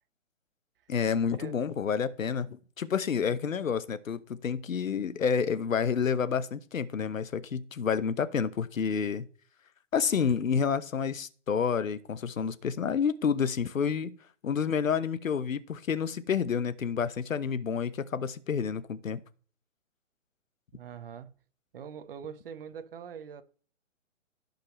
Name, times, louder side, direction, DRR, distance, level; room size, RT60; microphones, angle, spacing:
voice 1, 0.9-9.3 9.9-14.1 14.4-19.2, left 6 dB, 85° left, 1.0 m, -29 dB
voice 2, 20.7-21.4 21.7-23.4, right 7 dB, 45° right, 1.1 m, -43 dB
15.5 x 5.3 x 3.1 m
hypercardioid pair, 155°, 39 cm